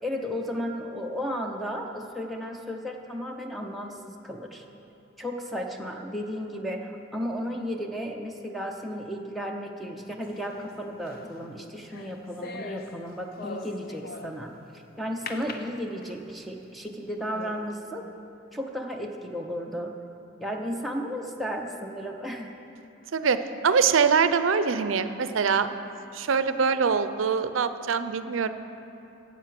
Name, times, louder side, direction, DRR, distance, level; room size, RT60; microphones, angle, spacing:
voice 1, 0.0-4.6 5.2-18.1 18.5-20.0 20.4-22.5, equal, ahead, 2 dB, 0.6 m, -34 dB
sound 1, 10.2-14.6 15.3-16.4 16.9-17.0 17.3-17.8, left 3 dB, 50° left, 0.6 m, -41 dB
voice 2, 23.6-25.7 26.1-28.5, right 6 dB, 90° right, 11 dB, 0.5 m, -23 dB
10.0 x 8.2 x 7.5 m, 2.9 s
head